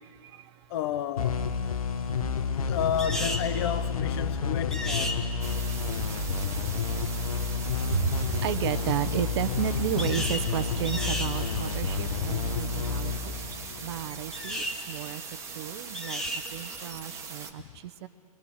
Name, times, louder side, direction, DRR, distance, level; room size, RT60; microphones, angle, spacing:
voice 1, 0.7-1.5 2.6-5.2 13.2-13.3 16.2-16.3, left 9 dB, 40° left, 9 dB, 0.7 m, -31 dB
sound 1, 1.2-14.5, left 5 dB, 65° left, 1.4 m, -30 dB
sound 2, 3.0-3.5 4.7-5.2 10.0-10.5 10.8-11.3 14.3-14.8 15.9-16.4, left 1 dB, 5° left, 1.5 m, -33 dB
sound 3, 5.4-17.5, right 5 dB, 15° right, 1.5 m, -41 dB
voice 2, 7.9-15.2 15.5-16.2 16.5-18.1, right 10 dB, 45° right, 13 dB, 1.0 m, -32 dB
29.5 x 22.5 x 5.8 m, 2.4 s
hypercardioid pair, 130°, 19 cm